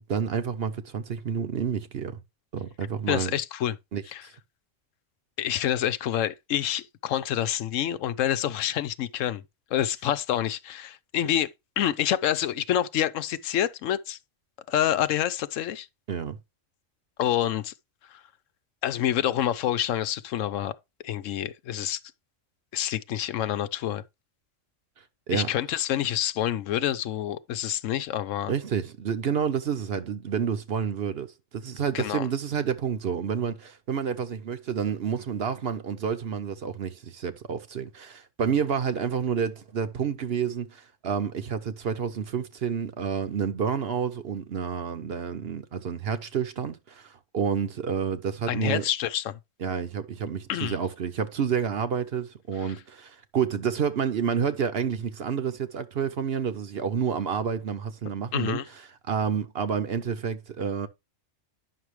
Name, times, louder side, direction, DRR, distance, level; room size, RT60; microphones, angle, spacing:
voice 1, 0.0-2.2 2.5-3.3 3.9-4.0 16.1-16.4 25.3-25.5 28.5-31.3 31.5-48.8 49.6-58.6 59.1-60.9, right 7 dB, 55° right, 1.0 m, -29 dB
voice 2, 3.1-3.8 4.1-4.2 5.4-9.4 9.7-11.5 11.8-14.2 14.7-15.9 17.2-17.7 18.1-18.2 18.8-20.7 21.0-22.0 22.7-24.0 25.3-28.5 31.9-32.3 48.5-49.4 50.5-50.8 52.7-52.8 58.3-58.6, left 11 dB, 85° left, 1.0 m, -27 dB
9.5 x 6.0 x 3.1 m
omnidirectional pair, 1.3 m